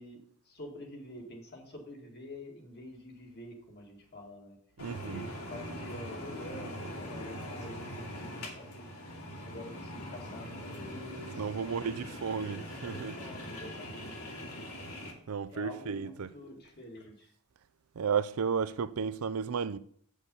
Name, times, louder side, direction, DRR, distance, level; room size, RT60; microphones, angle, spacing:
voice 1, 0.0-4.6 5.0-8.9 9.4-14.4 15.5-17.3, left 1 dB, 50° left, 2.4 m, -47 dB
sound 1, 4.8-15.1, equal, 85° left, 2.6 m, -42 dB
voice 2, 4.8-5.2 11.4-13.1 15.3-16.3 18.0-19.8, right 6 dB, 75° right, 0.5 m, -33 dB
8.2 x 6.4 x 5.5 m
head